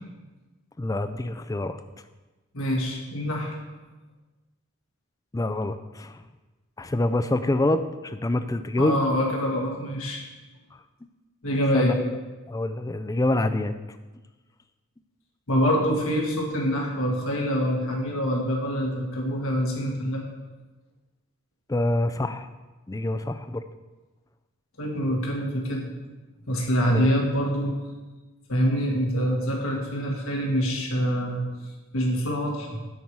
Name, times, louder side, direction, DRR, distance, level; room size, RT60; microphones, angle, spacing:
voice 1, 0.8-1.8 5.3-6.3 6.8-9.0 10.7-10.8 11.7-12.2 12.5-13.7 21.7-22.5 22.9-23.6 26.9-27.1, left 1 dB, 15° left, 9 dB, 0.3 m, -26 dB
voice 2, 2.5-3.5 8.8-10.2 11.4-11.9 15.5-20.2 24.8-25.9 26.5-27.7 28.5-31.4 31.9-32.8, equal, 70° left, -1 dB, 1.7 m, -25 dB
9.3 x 4.7 x 7.4 m, 1.2 s
head